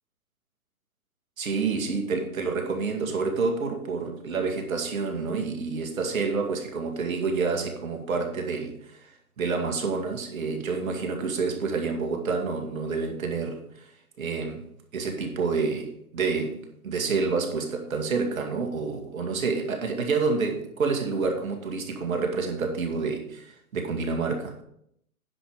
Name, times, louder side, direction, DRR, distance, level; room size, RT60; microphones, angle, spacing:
voice 1, 1.4-9.1 9.4-13.9 14.2-14.7 14.9-24.6, right 4 dB, 65° right, 2.3 m, -28 dB
10.0 x 6.5 x 5.2 m
hypercardioid pair, 135°, 43 cm